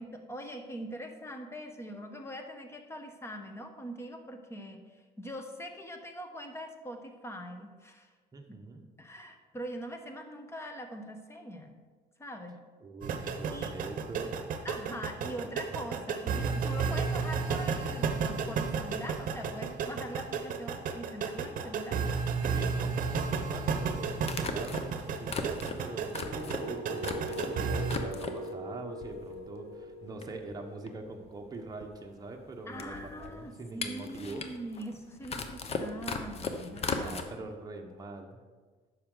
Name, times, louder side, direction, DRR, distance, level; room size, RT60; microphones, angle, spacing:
voice 1, 0.0-8.1 9.0-11.7 12.2-12.6 13.5-13.7 14.6-22.0 32.7-37.3, equal, 15° left, 5 dB, 1.0 m, -42 dB
voice 2, 8.3-8.8 12.8-14.6 15.2-15.5 22.5-34.4 36.7-38.4, right 2 dB, 20° right, 2 dB, 1.0 m, -44 dB
sound 1, 13.0-28.0, right 5 dB, 55° right, 0.9 m, -33 dB
sound 2, 21.4-21.5 23.3-23.4 24.2-27.5 27.8-28.5 29.0-29.7 29.9-30.0 30.2-37.2, left 4 dB, 35° left, 0.8 m, -38 dB
sound 3, 26.2-32.0, equal, 85° left, 2.3 m, -41 dB
9.6 x 6.4 x 3.9 m, 1.4 s
cardioid pair, 110°, 17 cm